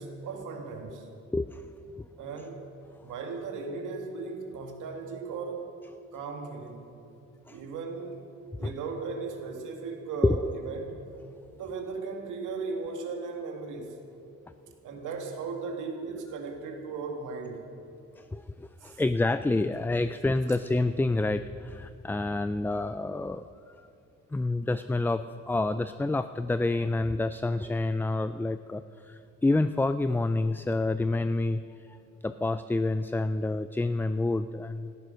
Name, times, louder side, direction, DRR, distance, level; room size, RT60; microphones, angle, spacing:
voice 1, 0.0-1.1 2.2-2.6 3.0-5.7 6.1-6.9 7.5-8.3 8.6-11.0 11.5-13.9 14.8-17.7 18.8-19.0, right 4 dB, 85° right, 3 dB, 2.2 m, -37 dB
voice 2, 1.3-1.7 2.0-2.1 7.5-7.6 8.6-8.7 10.2-10.5 18.2-23.9 24.3-32.0 32.2-34.9, left 2 dB, 5° left, 12 dB, 0.3 m, -28 dB
15.0 x 14.0 x 6.4 m, 2.7 s
cardioid pair, 90°, 30 cm